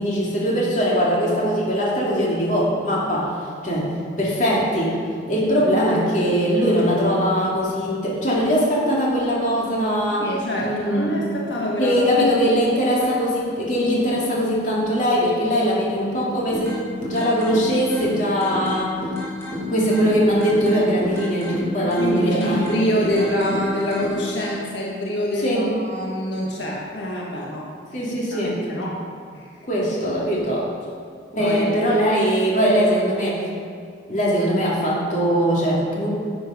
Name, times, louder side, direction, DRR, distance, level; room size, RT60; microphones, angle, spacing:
voice 1, 0.0-3.3 3.6-3.9 4.2-10.3 10.6-11.2 11.8-19.0 19.6-22.7 23.0-23.3 25.4-25.7 27.9-28.6 29.6-30.7 31.3-33.4 34.1-36.1, equal, 45° left, -5 dB, 2.7 m, -21 dB
voice 2, 10.2-12.1 21.8-29.0 29.3-29.5 31.4-31.9, equal, 85° left, -3 dB, 1.7 m, -26 dB
sound 1, 16.5-24.5, left 1 dB, 15° left, 3.1 m, -31 dB
11.0 x 8.0 x 5.1 m, 2.2 s
head